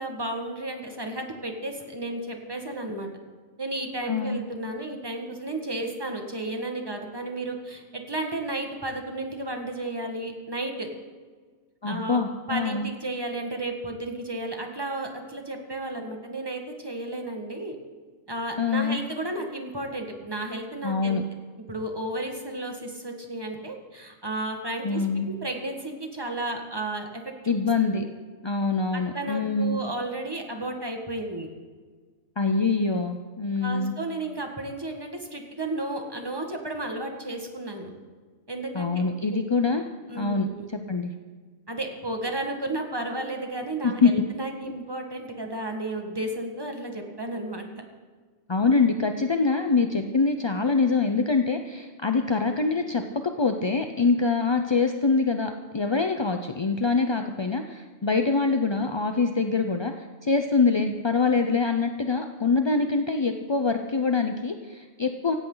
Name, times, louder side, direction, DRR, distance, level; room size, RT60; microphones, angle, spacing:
voice 1, 0.0-3.1 3.6-10.9 11.9-12.2 12.5-17.8 18.3-21.2 21.7-27.1 27.4-27.6 27.9-28.0 28.9-31.5 33.6-37.9 38.5-39.0 40.1-40.7 41.7-47.7, right 2 dB, 15° right, 3 dB, 1.7 m, -33 dB
voice 2, 4.1-4.4 11.8-12.9 18.6-19.0 20.8-21.2 24.8-25.3 27.5-28.0 28.4-29.8 32.4-33.9 38.7-39.8 40.1-41.1 43.8-44.1 48.5-65.4, left 4 dB, 35° left, 6 dB, 0.4 m, -24 dB
17.0 x 17.0 x 4.0 m, 1.5 s
omnidirectional pair, 1.4 m